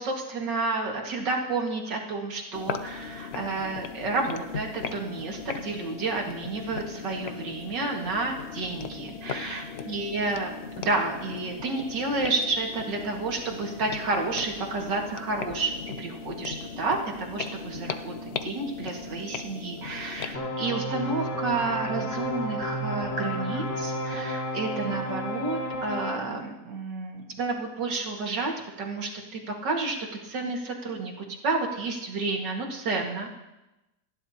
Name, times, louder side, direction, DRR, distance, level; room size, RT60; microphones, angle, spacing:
voice 1, 0.0-10.5 10.9-15.7 16.0-28.5 28.8-30.0 30.2-33.3, right 3 dB, 85° right, 0 dB, 2.5 m, -30 dB
sound 1, 2.5-20.4, left 6 dB, 65° left, 0.6 m, -38 dB
sound 2, 20.3-26.2, equal, 45° left, 2.7 m, -31 dB
29.0 x 10.5 x 2.9 m, 0.97 s
omnidirectional pair, 1.8 m